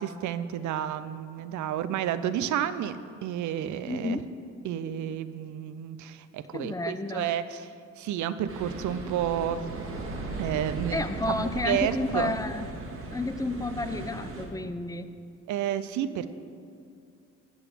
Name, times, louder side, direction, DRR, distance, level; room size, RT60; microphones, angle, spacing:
voice 1, 0.0-4.2 4.6-7.7 8.0-9.7 10.4-12.3 15.5-16.3, right 10 dB, 75° right, 13 dB, 0.5 m, -31 dB
voice 2, 3.9-4.2 6.5-7.3 10.9-12.7 13.1-15.1, left 2 dB, 10° left, 11 dB, 0.4 m, -31 dB
sound 1, 8.5-14.5, right 2 dB, 45° right, 1.4 m, -37 dB
10.5 x 4.0 x 7.5 m, 2.3 s
cardioid pair, 90°, 30 cm